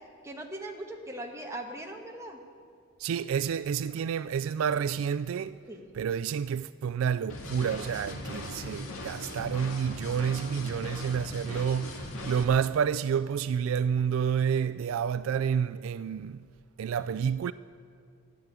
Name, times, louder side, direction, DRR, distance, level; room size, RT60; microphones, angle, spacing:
voice 1, 0.2-2.4 5.7-5.9, right 1 dB, 15° right, 1.4 m, -40 dB
voice 2, 3.0-5.6 5.9-16.4 16.8-17.5, right 7 dB, 70° right, 0.3 m, -29 dB
sound 1, 7.3-12.4, left 2 dB, 90° left, 2.2 m, -39 dB
14.5 x 10.5 x 8.3 m
head